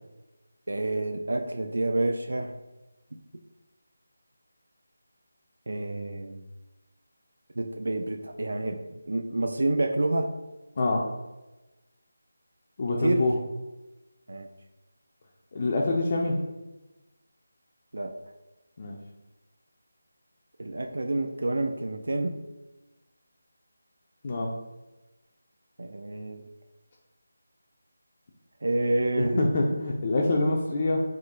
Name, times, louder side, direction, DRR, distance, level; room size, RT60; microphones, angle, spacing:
voice 1, 0.7-2.5 5.7-6.5 7.6-10.3 13.0-13.3 14.3-14.5 17.9-18.1 20.6-22.4 25.8-26.4 28.6-29.5, right 2 dB, 70° right, 5 dB, 0.3 m, -28 dB
voice 2, 12.8-13.3 15.5-16.3 18.8-19.0 24.2-24.5 29.2-31.0, left 2 dB, 30° left, -1 dB, 0.3 m, -25 dB
3.6 x 2.0 x 3.6 m, 1.1 s
figure-of-eight pair, 175°, 0 cm